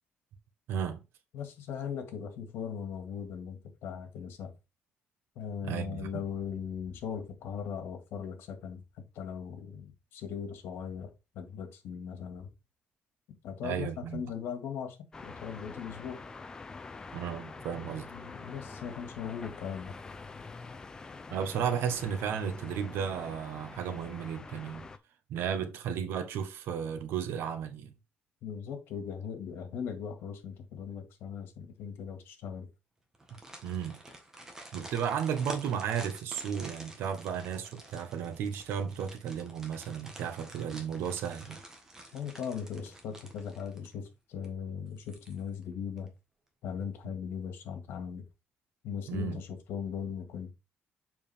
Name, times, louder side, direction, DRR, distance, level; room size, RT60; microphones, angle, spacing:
voice 1, 0.7-1.0 5.6-6.2 13.6-14.2 17.1-18.1 21.3-24.9 25.3-27.9 33.6-34.0 34.7-41.6 49.1-49.4, right 8 dB, 80° right, 1.2 m, -34 dB
voice 2, 1.3-4.5 5.4-8.8 9.1-11.1 11.3-12.5 13.4-15.0 15.2-16.2 18.1-19.9 28.4-32.7 42.1-46.1 46.6-48.2 48.8-50.5, left 7 dB, 80° left, 2.0 m, -39 dB
sound 1, 15.1-25.0, left 4 dB, 20° left, 0.6 m, -46 dB
sound 2, 33.1-44.1 44.4-44.5 45.0-45.6 46.0-46.1, right 1 dB, 15° right, 1.5 m, -49 dB
7.1 x 5.0 x 3.5 m
cardioid pair, 170°, 4 cm